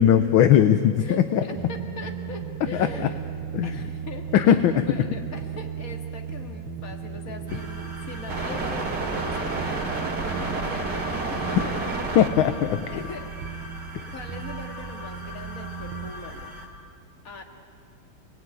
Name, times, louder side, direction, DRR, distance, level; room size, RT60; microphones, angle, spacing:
voice 1, 0.0-1.4 2.7-2.9 3.5-3.7 4.3-4.8 12.1-12.8 13.9-14.0, left 10 dB, 70° left, 9 dB, 1.6 m, -19 dB
voice 2, 1.0-3.2 3.6-11.8 12.9-13.7 14.1-16.5 17.2-17.4, left 3 dB, 40° left, 3 dB, 2.4 m, -41 dB
sound 1, 1.5-16.1, right 7 dB, 85° right, 2.0 m, -36 dB
sound 2, 7.5-16.7, right 2 dB, 55° right, 3.2 m, -32 dB
30.0 x 20.5 x 9.4 m, 2.3 s
omnidirectional pair, 2.4 m